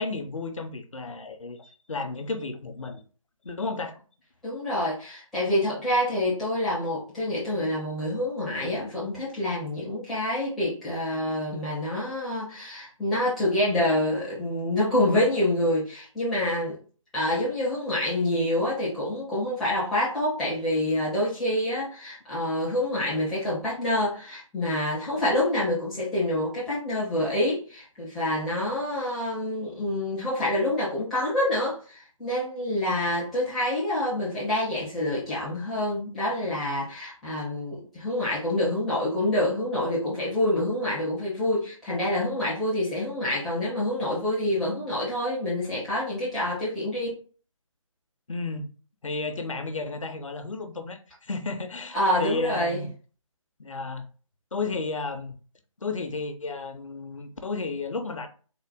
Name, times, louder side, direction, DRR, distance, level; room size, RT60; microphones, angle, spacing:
voice 1, 0.0-3.0 3.4-4.0 48.3-48.7 49.0-52.9 53.6-54.1 54.5-55.4 55.8-58.3, left 3 dB, 70° left, 0.7 m, -33 dB
voice 2, 4.4-16.8 17.1-47.1 51.9-52.8, left 1 dB, ahead, 0.4 m, -27 dB
3.8 x 2.1 x 3.4 m
figure-of-eight pair, 150°, 17 cm